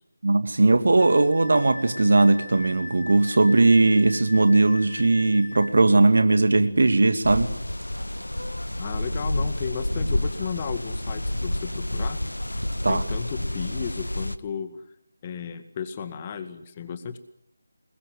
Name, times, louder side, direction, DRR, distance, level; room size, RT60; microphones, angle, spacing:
voice 1, 0.2-7.5 12.8-13.0, right 2 dB, 60° right, 9 dB, 2.4 m, -19 dB
Wind instrument woodwind instrument, 1.0-5.7, left 3 dB, 45° left, 2.1 m, -40 dB
sound 1, 7.2-14.4, left 1 dB, 85° left, 1.3 m, -29 dB
voice 2, 8.8-12.2 12.9-14.8 15.2-17.2, left 6 dB, 25° left, 9 dB, 2.0 m, -34 dB
25.5 x 21.5 x 7.9 m, 0.74 s
figure-of-eight pair, 160°, 0 cm